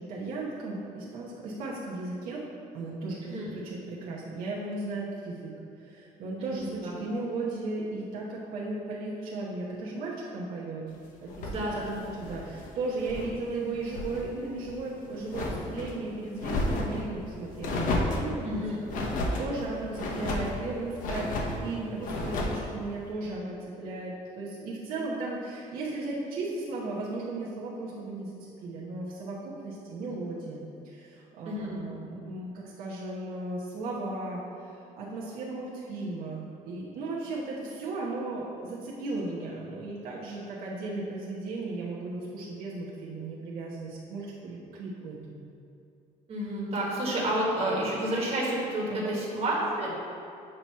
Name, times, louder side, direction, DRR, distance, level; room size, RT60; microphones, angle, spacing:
voice 1, 0.0-2.4 2.7-5.5 5.8-10.8 11.2-18.6 18.9-45.4 48.9-49.2, right 2 dB, 80° right, -6 dB, 1.0 m, -36 dB
voice 2, 6.4-6.9 11.5-12.0 18.4-18.8 31.4-31.7 46.3-49.9, right 1 dB, 40° right, -4 dB, 1.5 m, -30 dB
sound 1, 11.3-13.4 13.7-14.2 14.6-15.9 16.4-17.0 17.6-18.3 18.9-19.5 19.9-20.6 21.0-21.6 22.0-22.6, left 2 dB, 65° left, 0.9 m, -32 dB
7.7 x 3.0 x 5.5 m, 2.6 s
cardioid pair, 150°, 15 cm